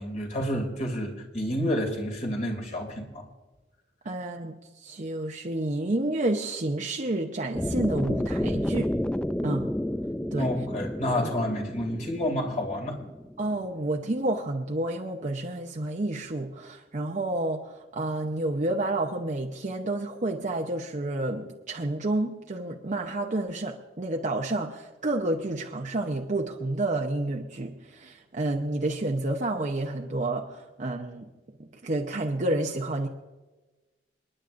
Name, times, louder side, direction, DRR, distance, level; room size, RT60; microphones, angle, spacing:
voice 1, 0.0-3.2 10.4-13.0, left 1 dB, 45° left, 1 dB, 2.5 m, -29 dB
voice 2, 4.0-4.5 4.8-8.9 9.4-9.7 10.3-10.5 13.4-31.3 31.6-33.1, right 2 dB, 45° right, 1 dB, 0.8 m, -30 dB
sound 1, 7.5-13.7, left 1 dB, 5° left, 0.3 m, -31 dB
29.0 x 10.0 x 2.6 m, 1.1 s
head